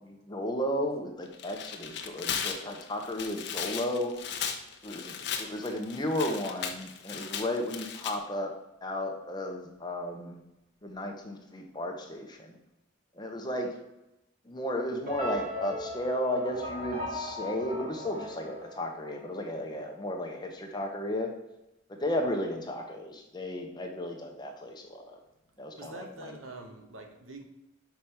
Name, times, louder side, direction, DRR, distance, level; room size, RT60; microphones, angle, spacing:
voice 1, 0.0-4.1 4.8-8.5 8.8-10.4 10.8-12.6 13.1-13.8 14.4-21.3 21.9-25.2 25.6-26.3, left 1 dB, 20° left, 2 dB, 1.0 m, -34 dB
Tearing, 1.3-8.1, left 7 dB, 55° left, 0.8 m, -37 dB
sound 1, 15.1-19.4, left 1 dB, 45° right, 2.3 m, -38 dB
voice 2, 25.8-27.4, right 2 dB, 80° right, 4 dB, 1.3 m, -45 dB
5.9 x 5.1 x 5.8 m, 0.92 s
head